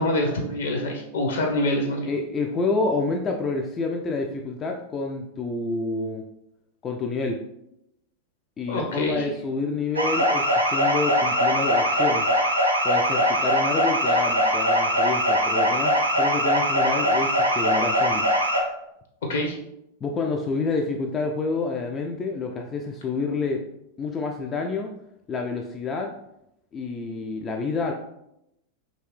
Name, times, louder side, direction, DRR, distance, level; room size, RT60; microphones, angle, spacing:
voice 1, 0.0-2.1 8.7-9.2 19.3-19.6, left 1 dB, 60° left, 1 dB, 0.8 m, -25 dB
voice 2, 2.1-6.2 6.8-7.4 8.6-12.3 12.8-18.3 20.0-23.6 24.0-24.9 25.3-26.2 26.7-27.9, left 3 dB, 25° left, 2 dB, 0.3 m, -28 dB
sound 1, 9.9-18.6, equal, 85° right, 0.5 m, -22 dB
3.1 x 2.7 x 3.0 m, 0.81 s
figure-of-eight pair, 90°, 0 cm